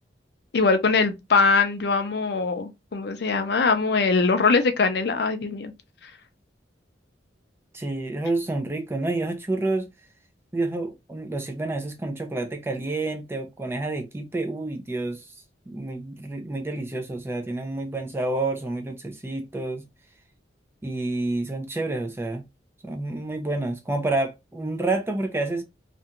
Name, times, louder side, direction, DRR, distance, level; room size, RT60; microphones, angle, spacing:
voice 1, 0.5-5.7, left 4 dB, 60° left, 0.5 m, -22 dB
voice 2, 7.7-9.9 10.5-15.3 15.7-19.8 20.8-22.4 22.8-25.6, right 2 dB, 15° right, 0.3 m, -29 dB
2.5 x 2.2 x 2.7 m
head